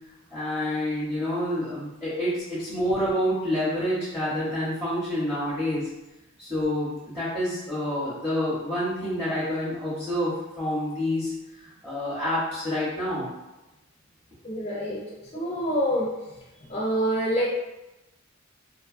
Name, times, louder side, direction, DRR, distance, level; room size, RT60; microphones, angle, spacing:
voice 1, 0.3-5.9 6.4-11.3 11.6-13.3, left 1 dB, 10° right, -12 dB, 0.7 m, -28 dB
voice 2, 14.4-15.0 15.3-16.1 16.7-17.5, equal, 30° left, -4 dB, 0.4 m, -26 dB
2.9 x 2.3 x 2.4 m, 0.99 s
head